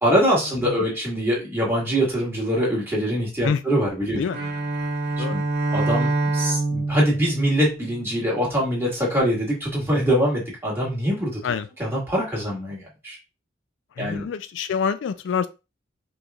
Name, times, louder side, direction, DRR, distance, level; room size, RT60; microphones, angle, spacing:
voice 1, 0.0-4.2 5.2-5.4 5.7-11.4 11.8-13.2 14.0-14.2, equal, 15° right, 2.0 m, -23 dB
Bowed string instrument, 4.3-8.5, right 3 dB, 55° right, 0.8 m, -26 dB
voice 2, 14.0-15.5, left 6 dB, 70° left, 0.3 m, -26 dB
5.1 x 3.2 x 2.4 m
head